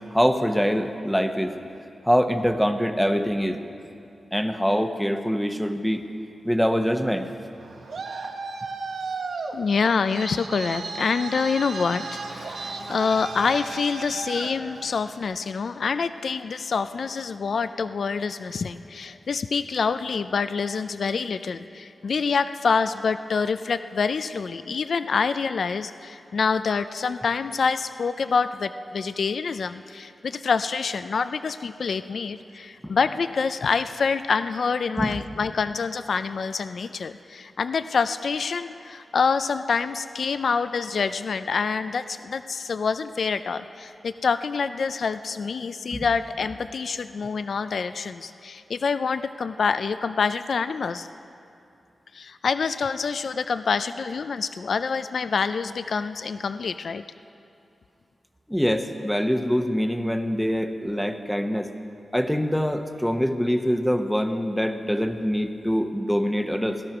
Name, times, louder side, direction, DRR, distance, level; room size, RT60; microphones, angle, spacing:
voice 1, 0.1-1.5 2.0-3.6 4.3-6.0 6.4-7.3 35.0-35.2 45.9-46.0 58.5-61.7 62.1-66.8, equal, ahead, 7 dB, 0.9 m, -24 dB
Traffic noise roadway noise, 7.5-15.2, right 3 dB, 90° right, 1.3 m, -35 dB
voice 2, 9.5-51.1 52.1-57.0, left 5 dB, 70° left, 12 dB, 0.4 m, -26 dB
17.0 x 13.0 x 6.0 m, 2.6 s
wide cardioid pair, 100°, 0 cm